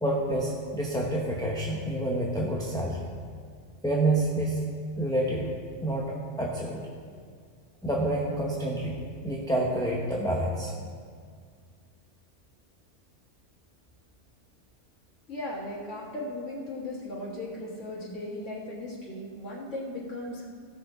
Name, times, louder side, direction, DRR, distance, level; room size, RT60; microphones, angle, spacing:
voice 1, 0.0-3.1 3.8-4.6 5.0-5.5 5.8-6.1 6.4-6.8 7.8-8.9 9.2-10.7, right 1 dB, 5° left, -4 dB, 0.7 m, -28 dB
voice 2, 15.3-20.5, left 1 dB, 80° left, -6 dB, 2.0 m, -37 dB
15.5 x 6.5 x 3.9 m, 2.1 s
omnidirectional pair, 1.2 m